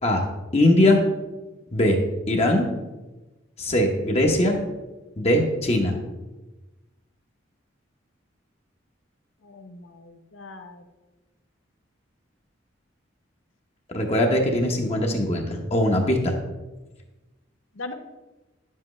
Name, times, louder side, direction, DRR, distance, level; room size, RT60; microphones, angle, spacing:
voice 1, 0.5-1.0 1.7-2.0 2.3-2.7 3.6-4.6 5.2-5.9 13.9-16.3, left 1 dB, 35° left, 1 dB, 0.9 m, -21 dB
voice 2, 9.4-10.8 17.8-17.9, left 2 dB, 85° left, 6 dB, 0.8 m, -40 dB
10.0 x 7.5 x 3.2 m, 1.1 s
head